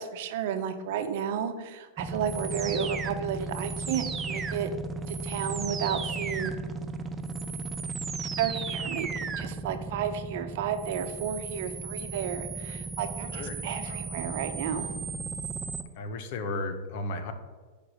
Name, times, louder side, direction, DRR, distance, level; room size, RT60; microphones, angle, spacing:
voice 1, 0.0-4.7 5.1-6.5 8.4-14.9, right 8 dB, 65° right, 8 dB, 0.9 m, -32 dB
sound 1, 2.0-15.8, right 4 dB, 20° right, 0.6 m, -35 dB
voice 2, 16.0-17.3, left 2 dB, 60° left, 9 dB, 1.1 m, -34 dB
6.9 x 5.0 x 6.5 m, 1.4 s
hypercardioid pair, 120°, 0 cm